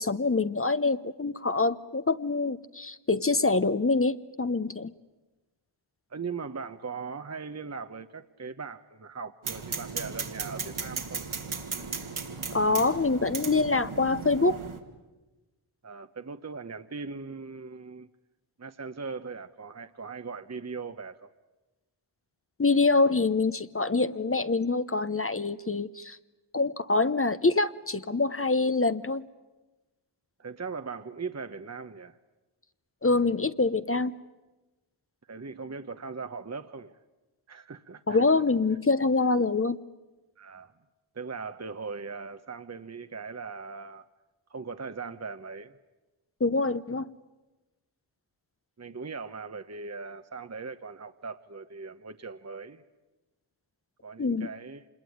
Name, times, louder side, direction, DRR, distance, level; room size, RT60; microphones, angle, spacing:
voice 1, 0.0-4.9 12.5-14.6 22.6-26.2 26.5-29.2 33.0-34.1 38.1-39.8 46.4-47.1 54.2-54.5, left 3 dB, 25° left, 13 dB, 0.9 m, -25 dB
voice 2, 6.1-11.3 15.8-18.1 18.6-21.3 30.4-32.2 35.3-37.0 37.5-38.2 40.4-40.7 41.1-44.1 44.5-45.8 48.8-52.8 54.0-54.8, right 4 dB, 30° right, 9 dB, 1.0 m, -39 dB
sound 1, 9.4-14.8, right 5 dB, 75° right, 2.7 m, -36 dB
26.0 x 21.5 x 9.4 m, 1.1 s
cardioid pair, 40°, 49 cm